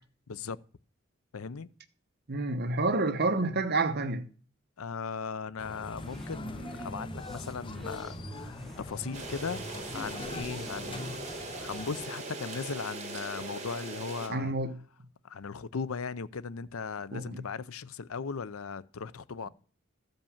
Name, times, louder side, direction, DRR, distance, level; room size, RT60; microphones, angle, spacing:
voice 1, 0.3-0.6 1.3-1.7 4.8-9.6 9.9-11.2 11.6-14.5 15.2-19.5, left 5 dB, 85° left, 0.6 m, -38 dB
voice 2, 2.3-4.3 14.3-14.8 17.1-17.4, right 3 dB, 50° right, 1.0 m, -29 dB
sound 1, 5.6-12.1, left 3 dB, 25° left, 0.6 m, -44 dB
sound 2, 6.0-11.4, equal, ahead, 1.8 m, -44 dB
sound 3, 9.1-14.3, right 3 dB, 35° right, 2.1 m, -40 dB
14.5 x 5.3 x 7.1 m
head